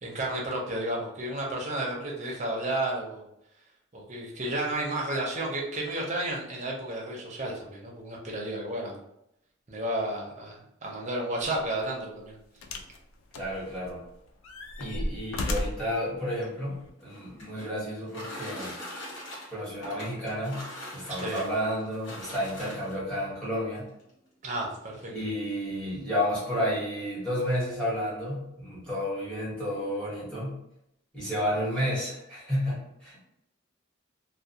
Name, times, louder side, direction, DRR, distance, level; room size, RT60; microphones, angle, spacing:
voice 1, 0.0-3.2 3.9-9.0 9.7-12.4 21.1-21.4 24.4-25.1, right 1 dB, 35° right, -2 dB, 0.6 m, -32 dB
sound 1, 11.4-11.6 12.6-13.0 13.3-14.0 14.4-15.9 16.8-16.9, left 1 dB, 85° left, 0.3 m, -33 dB
voice 2, 13.4-14.0 14.8-18.7 19.5-20.6 20.9-23.9 25.1-30.6 31.1-33.2, equal, 5° left, -9 dB, 1.1 m, -31 dB
sound 2, 16.9-23.1 24.0-24.1 24.5-24.6 24.9-25.3, left 1 dB, 65° left, 0.9 m, -42 dB
2.3 x 2.2 x 2.7 m, 0.79 s
head